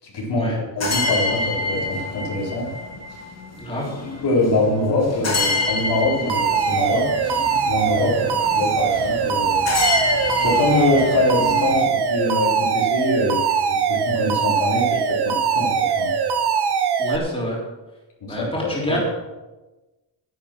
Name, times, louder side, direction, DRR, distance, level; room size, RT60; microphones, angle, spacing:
voice 1, 0.0-2.7 4.2-7.1 7.7-9.6 10.4-16.1 18.2-19.0, left 2 dB, 65° left, -3 dB, 4.3 m, -24 dB
sound 1, 0.8-11.8, left 3 dB, 35° left, 1.9 m, -27 dB
voice 2, 3.6-3.9 17.0-17.6 18.3-19.0, left 1 dB, 10° left, -4 dB, 3.8 m, -27 dB
Alarm, 6.3-17.2, right 6 dB, 60° right, 1.2 m, -21 dB
11.5 x 10.5 x 6.0 m, 1.1 s
wide cardioid pair, 165°, 44 cm